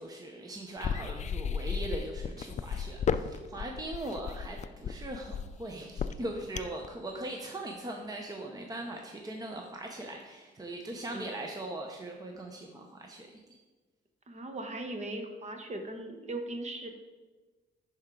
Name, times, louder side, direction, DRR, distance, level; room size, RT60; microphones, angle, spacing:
voice 1, 0.0-13.4, right 1 dB, 20° right, 2 dB, 0.8 m, -40 dB
sound 1, 0.8-6.9, left 7 dB, 35° left, 0.4 m, -34 dB
voice 2, 14.3-16.9, right 2 dB, 35° right, 5 dB, 1.1 m, -38 dB
10.5 x 4.5 x 3.8 m, 1.3 s
cardioid pair, 90°, 20 cm